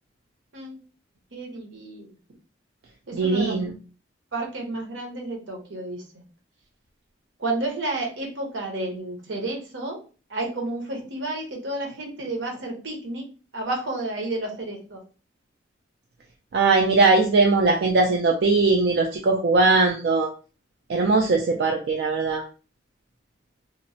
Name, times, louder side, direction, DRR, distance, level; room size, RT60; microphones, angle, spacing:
voice 1, 1.3-2.1 3.1-3.7 4.3-6.0 7.4-10.0 10.3-13.3 13.5-15.0, right 2 dB, 70° right, 1 dB, 0.8 m, -31 dB
voice 2, 3.2-3.7 16.5-20.3 20.9-22.4, right 3 dB, 55° right, 1 dB, 0.3 m, -20 dB
2.9 x 2.1 x 2.6 m, 0.36 s
head